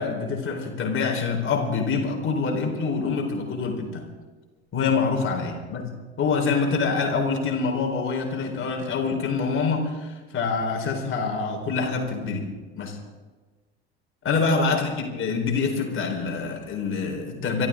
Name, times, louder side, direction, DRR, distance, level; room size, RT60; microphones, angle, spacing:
voice 1, 0.0-4.0 4.7-5.8 6.2-12.5 12.7-13.0 14.2-17.7, left 4 dB, 40° left, 1 dB, 4.4 m, -25 dB
25.5 x 13.5 x 3.8 m, 1.3 s
hypercardioid pair, 75°, 34 cm